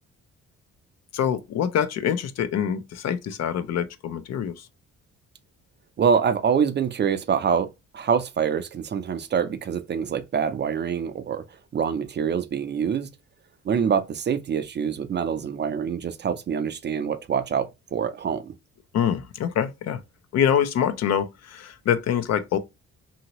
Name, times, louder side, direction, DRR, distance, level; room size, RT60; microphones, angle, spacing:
voice 1, 1.1-4.7 18.9-20.0 20.3-22.6, left 9 dB, 60° left, 0.5 m, -25 dB
voice 2, 6.0-7.7 7.9-11.4 11.7-13.1 13.7-18.5, right 7 dB, 35° right, 0.4 m, -25 dB
2.8 x 2.7 x 2.8 m
cardioid pair, 90°, 30 cm